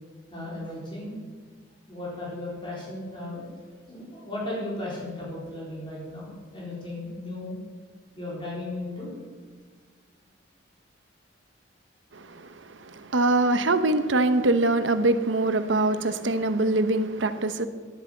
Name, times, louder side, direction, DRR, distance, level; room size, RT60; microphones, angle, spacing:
voice 1, 0.3-1.2 1.9-3.5 3.9-7.6 8.1-9.1, left 1 dB, 25° left, 4.2 m, -35 dB
voice 2, 12.1-17.7, right 2 dB, 90° right, 0.9 m, -24 dB
10.5 x 10.5 x 7.4 m
head